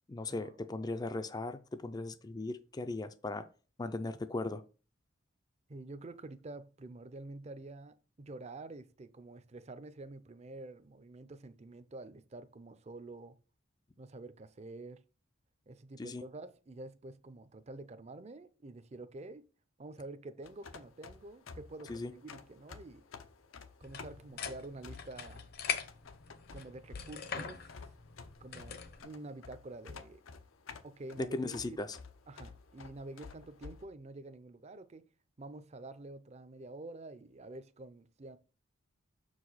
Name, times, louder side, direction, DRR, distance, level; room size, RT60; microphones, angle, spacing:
voice 1, 0.1-3.4 3.8-4.6 16.0-16.2 21.9-22.1 31.3-32.0, left 2 dB, 20° left, 0.4 m, -38 dB
voice 2, 5.7-13.4 14.0-15.0 15.7-19.4 19.8-23.0 23.8-25.4 26.5-27.7 28.4-28.8 29.0-30.2 30.8-31.8 32.3-35.1 35.4-38.4, right 2 dB, 35° right, 0.5 m, -48 dB
sound 1, 20.4-33.9, left 4 dB, 85° left, 0.7 m, -52 dB
sound 2, 23.8-29.0, left 7 dB, 50° left, 0.8 m, -42 dB
6.5 x 4.8 x 4.0 m
head